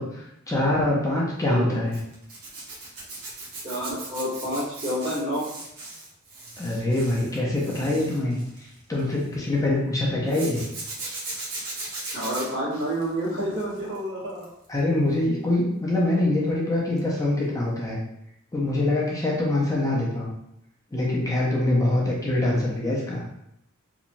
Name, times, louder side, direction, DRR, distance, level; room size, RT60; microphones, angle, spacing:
voice 1, 0.0-2.0 6.6-8.4 8.9-10.6 14.7-18.0 18.5-20.3 20.9-23.2, left 1 dB, 15° left, -4 dB, 0.5 m, -24 dB
voice 2, 1.5-1.8 3.6-5.5 12.1-14.5, equal, 55° right, -8 dB, 1.4 m, -29 dB
Zipper (clothing), 1.9-9.3 10.3-14.0 14.3-14.7 17.0-17.1 17.4-17.5, right 2 dB, 80° right, 0.8 m, -38 dB
2.9 x 2.2 x 2.5 m, 0.80 s
head